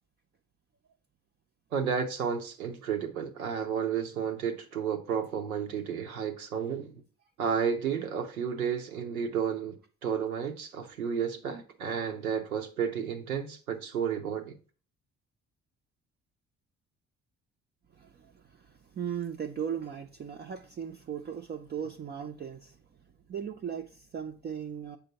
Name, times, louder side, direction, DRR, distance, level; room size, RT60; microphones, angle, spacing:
voice 1, 1.7-7.0 7.4-9.8 10.0-14.6, right 7 dB, 85° right, 0.6 m, -32 dB
voice 2, 17.9-22.8 23.3-25.0, right 8 dB, 25° right, 0.4 m, -38 dB
6.8 x 5.0 x 2.8 m
figure-of-eight pair, 40°, 42 cm